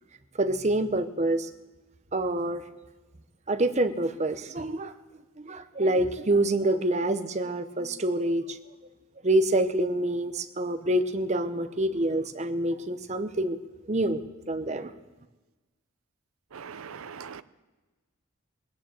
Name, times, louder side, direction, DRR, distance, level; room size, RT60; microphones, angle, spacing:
voice 1, 0.4-1.5 2.1-2.6 3.5-4.9 5.4-8.6 9.2-13.6 13.9-14.2 14.5-14.9, right 1 dB, 30° right, 0.8 m, -26 dB
voice 2, 16.5-17.4, right 6 dB, 85° right, 0.6 m, -41 dB
19.0 x 9.6 x 7.6 m
head